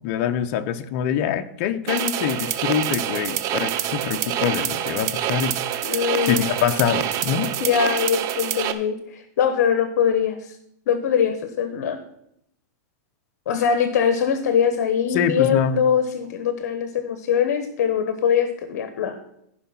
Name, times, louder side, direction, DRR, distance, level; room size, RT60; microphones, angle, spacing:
voice 1, 0.0-5.6 6.2-7.5 15.1-15.8, left 9 dB, 45° left, 9 dB, 0.9 m, -24 dB
sound 1, 1.9-8.7, right 11 dB, 35° right, 0.9 m, -26 dB
voice 2, 5.8-6.5 7.6-10.6 10.9-12.0 13.5-19.2, left 7 dB, 65° left, 10 dB, 1.2 m, -22 dB
14.5 x 5.6 x 5.9 m, 0.74 s
supercardioid pair, 145°, 9 cm